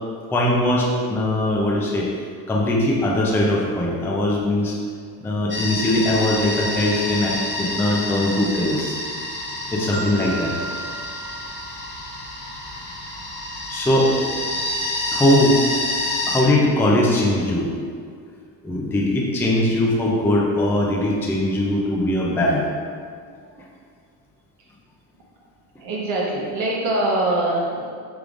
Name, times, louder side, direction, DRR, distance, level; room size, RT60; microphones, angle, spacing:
voice 1, 0.3-2.1 2.5-4.8 5.2-9.0 9.7-10.6 13.7-14.1 15.1-15.6 16.3-17.7 18.6-22.6, left 1 dB, 5° left, -2 dB, 0.4 m, -20 dB
sound 1, 5.5-16.4, left 1 dB, 20° left, 0.8 m, -28 dB
Marimba xylophone, 9.9-12.1, right 3 dB, 45° left, 1.0 m, -34 dB
voice 2, 25.8-27.9, right 1 dB, 55° right, -3 dB, 0.9 m, -23 dB
5.1 x 3.3 x 2.5 m, 2.2 s
supercardioid pair, 100°, 49 cm